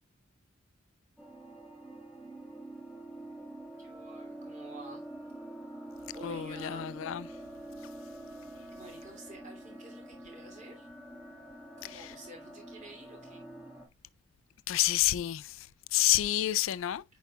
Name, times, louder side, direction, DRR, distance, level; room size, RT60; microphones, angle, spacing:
sound 1, 1.2-13.9, right 1 dB, 5° right, 1.7 m, -46 dB
voice 1, 3.8-5.0 6.1-6.9 8.7-10.9 11.8-13.5, right 2 dB, 35° right, 2.8 m, -50 dB
voice 2, 6.2-7.3 11.8-12.1 14.7-17.0, left 14 dB, 75° left, 0.3 m, -29 dB
8.3 x 5.2 x 2.3 m
head